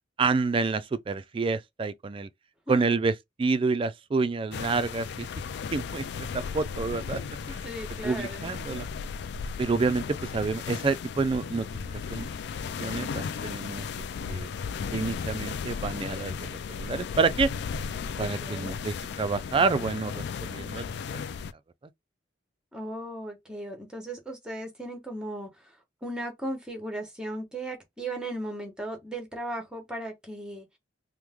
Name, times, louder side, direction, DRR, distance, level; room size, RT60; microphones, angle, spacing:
voice 1, 0.2-2.3 2.7-5.3 5.7-7.2 7.5-7.6 8.0-8.9 9.6-11.7 12.1-12.3 12.8-13.9 14.3-14.5 14.9-17.5 18.2-20.8, right 4 dB, 30° right, 0.3 m, -28 dB
voice 2, 2.7-3.0 7.5-8.5 18.2-18.7 22.7-25.7 26.0-30.7, right 1 dB, 5° right, 1.0 m, -37 dB
sound 1, 4.5-21.5, left 6 dB, 60° left, 0.3 m, -35 dB
3.1 x 2.1 x 3.5 m
head